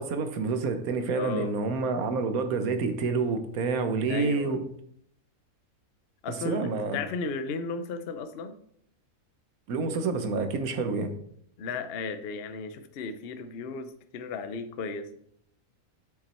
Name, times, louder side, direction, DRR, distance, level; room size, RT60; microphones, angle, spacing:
voice 1, 0.0-4.6 6.4-7.0 9.7-11.1, right 4 dB, 70° right, 8 dB, 1.3 m, -28 dB
voice 2, 1.1-1.5 4.1-4.6 6.2-8.5 11.6-15.1, left 4 dB, 55° left, 9 dB, 0.7 m, -35 dB
7.3 x 6.0 x 4.4 m, 0.68 s
omnidirectional pair, 1.6 m